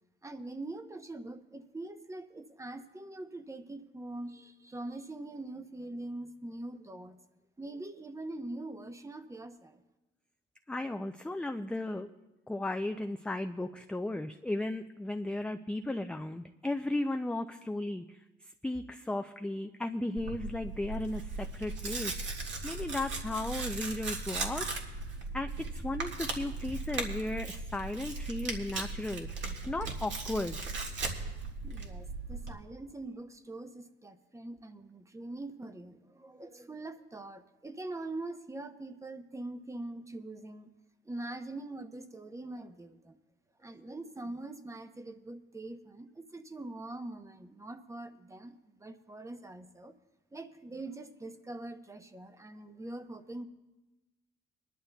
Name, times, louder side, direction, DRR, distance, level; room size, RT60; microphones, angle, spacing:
voice 1, 0.2-7.2 7.6-9.8 31.6-40.7 41.0-43.2 43.6-49.9 50.3-53.5, right 2 dB, 15° right, 9 dB, 0.7 m, -43 dB
voice 2, 10.7-12.1 12.5-18.2 18.6-22.2 22.6-24.8 25.3-29.3 29.7-30.6, left 2 dB, 5° left, 6 dB, 0.4 m, -35 dB
Tearing, 20.2-32.5, right 3 dB, 65° right, 1.7 m, -38 dB
25.0 x 11.0 x 2.3 m, 1.1 s
cardioid pair, 90°, 20 cm